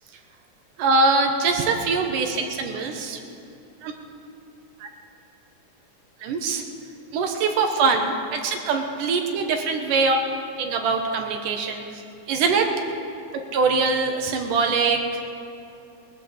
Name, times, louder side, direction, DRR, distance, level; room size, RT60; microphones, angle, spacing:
voice 1, 0.8-3.2 3.8-3.9 4.8-4.9 6.2-6.6 7.1-10.2 10.6-12.0 12.3-12.7 13.5-15.2, right 4 dB, 80° right, 3 dB, 2.7 m, -23 dB
21.5 x 15.0 x 3.4 m, 2.6 s
omnidirectional pair, 3.7 m